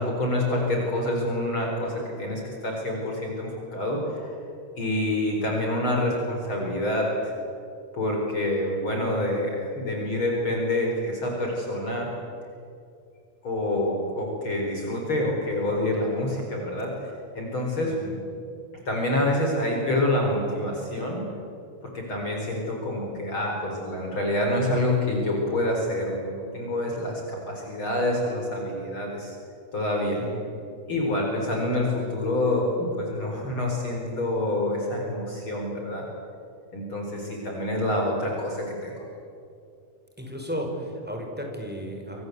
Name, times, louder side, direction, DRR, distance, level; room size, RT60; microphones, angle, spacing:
voice 1, 0.0-4.4 4.8-7.3 7.9-12.1 13.4-16.9 17.4-17.9 18.9-21.3 21.8-29.4 29.7-30.2 30.9-36.1 36.7-39.1, left 1 dB, 40° left, 0 dB, 5.4 m, -27 dB
voice 2, 17.9-18.2 30.2-30.5 40.2-42.2, equal, 5° right, 1 dB, 5.4 m, -34 dB
27.5 x 26.5 x 8.2 m, 2.5 s
omnidirectional pair, 3.5 m